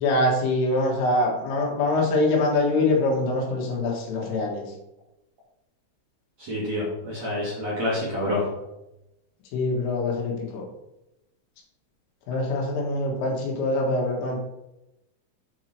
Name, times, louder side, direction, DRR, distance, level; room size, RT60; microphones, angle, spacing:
voice 1, 0.0-4.6 9.5-10.6 12.3-14.4, left 2 dB, 80° left, -1 dB, 4.1 m, -24 dB
voice 2, 6.4-8.4, left 1 dB, 55° right, -7 dB, 2.1 m, -27 dB
8.4 x 4.7 x 4.5 m, 0.90 s
omnidirectional pair, 5.8 m